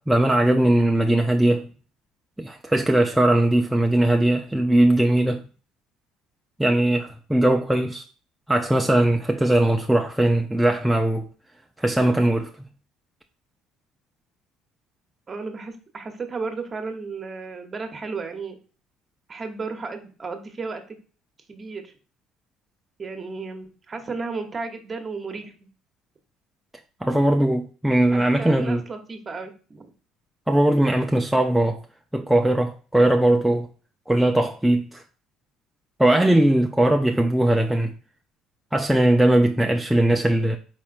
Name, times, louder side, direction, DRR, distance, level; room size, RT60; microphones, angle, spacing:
voice 1, 0.0-1.7 2.4-5.4 6.6-8.0 8.5-11.3 11.8-12.5 27.0-28.8 30.5-31.8 32.1-33.7 34.1-35.0 36.0-37.9 38.7-40.6, right 1 dB, 5° right, 0.4 m, -20 dB
voice 2, 15.3-18.6 19.3-21.0 21.5-21.9 23.0-25.5 28.1-29.9, right 4 dB, 30° right, 0.9 m, -34 dB
4.4 x 3.5 x 2.5 m
supercardioid pair, 95°, 0 cm